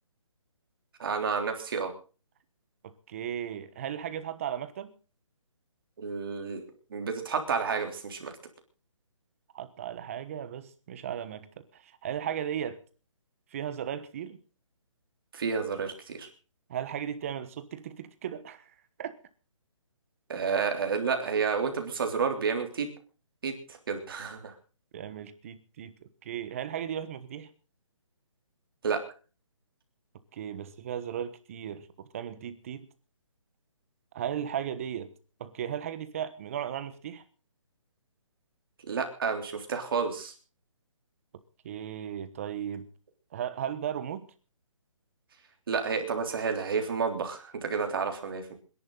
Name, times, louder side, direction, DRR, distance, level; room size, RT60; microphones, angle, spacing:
voice 1, 1.0-1.9 6.0-6.6 6.9-8.3 15.3-16.3 20.3-22.9 23.4-23.5 23.9-24.5 28.8-29.0 38.9-40.3 45.7-48.5, right 5 dB, 45° right, 5 dB, 3.4 m, -30 dB
voice 2, 2.8-4.9 9.5-12.8 13.5-14.4 16.7-18.7 19.0-19.1 24.9-27.5 30.3-31.9 32.1-32.9 34.1-35.1 35.4-37.2 41.6-42.9 43.3-44.2, right 9 dB, 25° right, 12 dB, 1.2 m, -36 dB
27.5 x 11.0 x 4.0 m, 0.37 s
hypercardioid pair, 170°, 17 cm